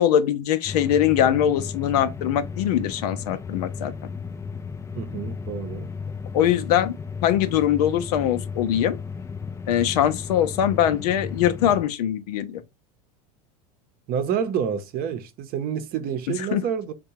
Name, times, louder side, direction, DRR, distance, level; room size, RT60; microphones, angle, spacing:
voice 1, 0.0-3.9 6.3-6.9 7.2-9.0 9.7-12.6 16.5-16.6, left 10 dB, 70° left, 0.6 m, -22 dB
sound 1, 0.7-11.8, left 5 dB, 15° left, 0.4 m, -34 dB
voice 2, 4.9-5.9 14.1-16.9, right 7 dB, 45° right, 0.8 m, -28 dB
3.5 x 2.3 x 2.7 m
hypercardioid pair, 90°, 20 cm